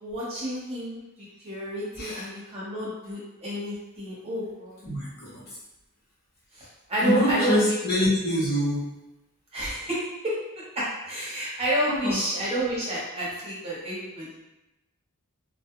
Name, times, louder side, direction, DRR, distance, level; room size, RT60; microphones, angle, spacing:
voice 1, 0.0-1.0 1.4-4.8 6.6-7.7 9.5-10.3 10.7-14.3, right 1 dB, 25° right, -8 dB, 0.9 m, -30 dB
voice 2, 4.8-5.4 7.0-8.9 11.9-12.1, left 1 dB, 45° left, -8 dB, 0.9 m, -25 dB
2.3 x 2.0 x 3.0 m, 0.96 s
head